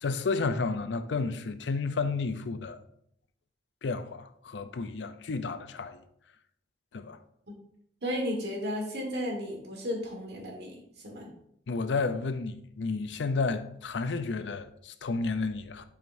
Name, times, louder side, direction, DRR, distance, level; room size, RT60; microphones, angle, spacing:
voice 1, 0.0-2.8 3.8-6.0 6.9-7.2 11.7-15.8, left 4 dB, 80° left, 0.5 m, -31 dB
voice 2, 8.0-11.3, equal, 65° right, 1.6 m, -34 dB
7.6 x 4.9 x 2.6 m
head